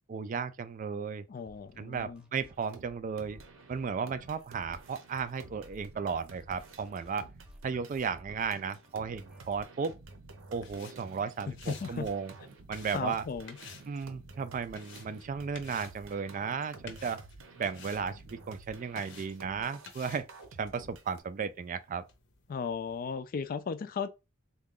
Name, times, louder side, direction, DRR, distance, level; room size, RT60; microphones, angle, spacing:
voice 1, 0.1-1.3 1.8-3.4 3.7-7.3 7.6-9.9 10.5-12.3 12.7-13.2 13.9-17.2 17.6-20.3 20.6-22.0, right 6 dB, 40° right, 0.3 m, -35 dB
voice 2, 1.3-2.3 11.5-12.1 12.9-13.6 22.5-24.1, left 5 dB, 45° left, 0.3 m, -36 dB
sound 1, 1.5-9.8, equal, 5° right, 0.6 m, -60 dB
sound 2, 2.6-2.8 3.2-21.2, right 3 dB, 75° right, 0.7 m, -51 dB
sound 3, 10.5-23.1, left 6 dB, 60° left, 0.7 m, -54 dB
3.6 x 2.3 x 3.7 m
head